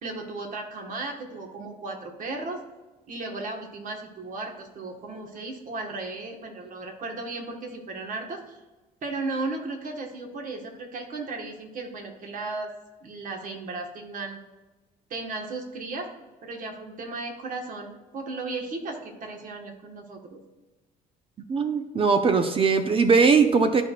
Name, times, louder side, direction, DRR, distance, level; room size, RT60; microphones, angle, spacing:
voice 1, 0.0-2.6 3.1-8.6 9.0-12.7 13.0-14.4 15.1-16.1 16.4-20.4, right 3 dB, 50° right, 3 dB, 1.5 m, -35 dB
voice 2, 21.5-23.8, right 5 dB, 35° right, 7 dB, 0.6 m, -20 dB
12.5 x 4.6 x 2.4 m, 1.2 s
cardioid pair, 110°, 17 cm